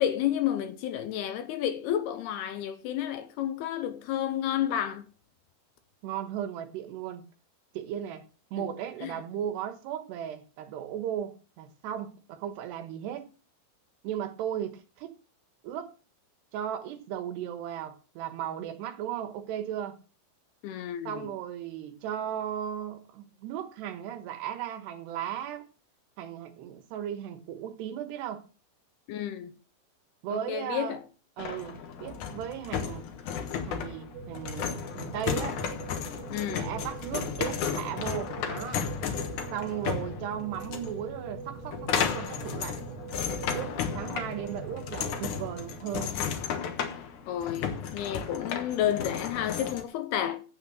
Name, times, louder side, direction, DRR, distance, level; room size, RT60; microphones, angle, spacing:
voice 1, 0.0-5.0 9.0-9.1 20.6-21.1 29.1-29.5 30.3-31.0 36.3-36.7 47.3-50.4, left 10 dB, 80° left, 2.6 m, -31 dB
voice 2, 6.0-7.2 7.7-8.2 8.5-13.3 14.0-15.1 15.6-15.9 16.5-20.0 21.0-25.6 26.2-28.4 30.2-31.0 31.4-33.1 33.7-35.6 36.5-38.8 39.5-42.8 43.5-46.1, right 10 dB, 75° right, 3.3 m, -36 dB
sound 1, 31.4-49.8, left 7 dB, 60° left, 2.2 m, -34 dB
sound 2, 34.1-45.7, right 3 dB, 60° right, 3.1 m, -42 dB
9.4 x 8.3 x 6.3 m
omnidirectional pair, 5.0 m